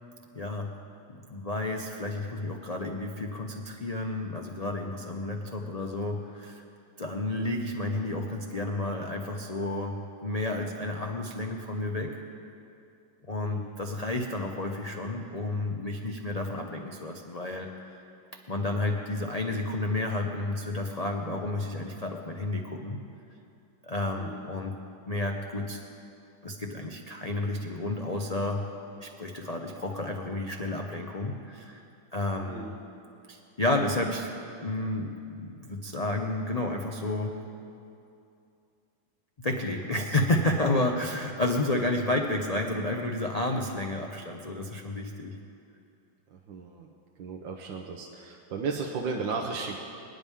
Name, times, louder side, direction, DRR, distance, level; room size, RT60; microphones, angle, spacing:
voice 1, 0.3-0.7 1.1-6.6 7.0-12.1 13.3-18.0 18.5-23.0 23.8-24.8 25.1-25.8 26.4-28.6 29.0-31.8 32.1-32.7 33.3-34.3 34.6-37.3 39.4-45.4, left 2 dB, 90° left, 1 dB, 0.3 m, -31 dB
voice 2, 46.3-46.9 47.2-49.8, right 4 dB, 85° right, 0 dB, 1.6 m, -35 dB
25.0 x 9.9 x 3.7 m, 2.6 s
omnidirectional pair, 2.1 m